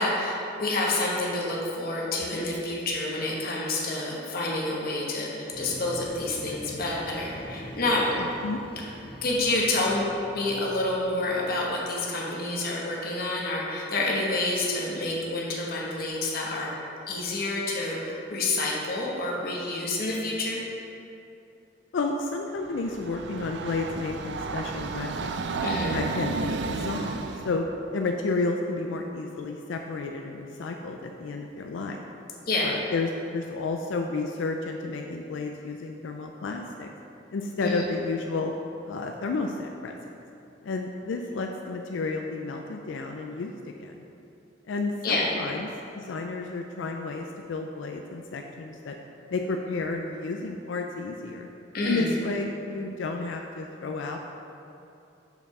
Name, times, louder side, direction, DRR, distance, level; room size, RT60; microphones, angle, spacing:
voice 1, 0.0-8.0 9.2-16.7 17.1-20.6 25.6-26.0 32.5-32.7 37.6-37.7 45.0-45.3 51.7-52.1, left 2 dB, 55° left, -3 dB, 1.1 m, -28 dB
sound 1, 5.5-11.9, equal, 30° left, 0.9 m, -44 dB
voice 2, 8.2-8.6 21.9-25.5 25.9-27.2 27.4-27.7 27.9-32.0 32.6-36.9 37.3-38.5 38.9-40.0 40.6-43.5 43.8-44.1 44.7-49.0 49.3-51.5 51.8-54.3, left 3 dB, 85° left, 3 dB, 0.4 m, -31 dB
Train, 22.6-27.6, right 4 dB, 65° right, 0.4 m, -32 dB
5.8 x 4.6 x 5.4 m, 2.8 s
head